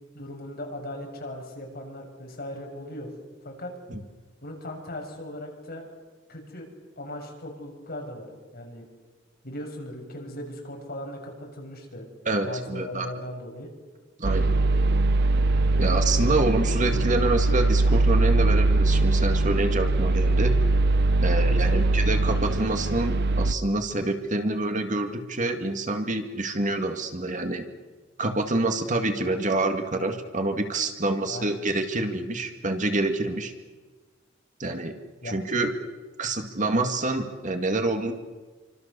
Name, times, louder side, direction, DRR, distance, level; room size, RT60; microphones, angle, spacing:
voice 1, 0.1-3.1 3.4-3.7 4.4-5.8 6.3-6.7 7.0-8.3 8.5-8.9 9.4-12.1 12.4-13.7 15.8-16.0 21.4-21.9 31.3-31.6 35.2-35.4, left 1 dB, 55° left, 1 dB, 6.9 m, -38 dB
voice 2, 12.3-13.1 14.2-14.5 15.8-20.6 21.2-27.6 28.2-33.5 34.6-35.0 35.2-35.7 36.2-38.1, right 2 dB, 40° right, 5 dB, 2.1 m, -27 dB
sound 1, 14.2-23.5, right 2 dB, 60° right, 0.8 m, -22 dB
28.0 x 25.5 x 6.9 m, 1.3 s
head